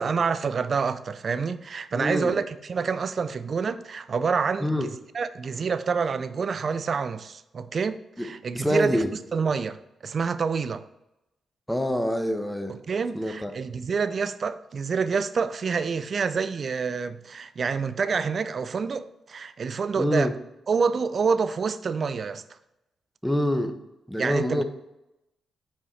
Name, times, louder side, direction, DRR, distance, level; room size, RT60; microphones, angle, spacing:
voice 1, 0.0-4.9 5.1-9.0 9.3-9.8 10.0-10.8 12.9-20.3 20.7-22.4 24.2-24.6, right 5 dB, 55° right, 0.4 m, -27 dB
voice 2, 1.9-2.4 4.6-4.9 8.2-8.3 8.5-9.1 11.7-12.8 13.1-13.5 20.0-20.3 23.2-23.8 24.1-24.6, left 1 dB, 5° left, 1.0 m, -26 dB
5.6 x 4.7 x 4.1 m
hypercardioid pair, 40°, 0 cm